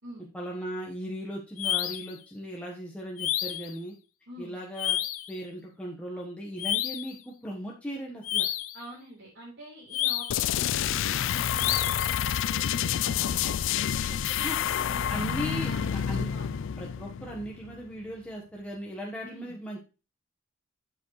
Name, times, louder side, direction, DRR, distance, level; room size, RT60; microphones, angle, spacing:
voice 1, 0.3-3.9 4.4-5.0 5.3-8.5 14.4-14.6 15.1-16.3 16.8-19.8, equal, 5° left, -3 dB, 1.2 m, -37 dB
sound 1, 1.6-2.1 3.2-3.7 4.8-5.3 6.6-7.2 8.2-8.8 9.9-10.5 11.6-12.1, left 12 dB, 85° left, 0.7 m, -30 dB
voice 2, 4.3-4.6 8.7-13.6 13.9-16.6 19.2-19.6, right 1 dB, 70° right, -8 dB, 4.1 m, -46 dB
sound 2, 10.3-17.9, left 9 dB, 65° left, 0.4 m, -29 dB
8.2 x 7.2 x 3.2 m, 0.31 s
head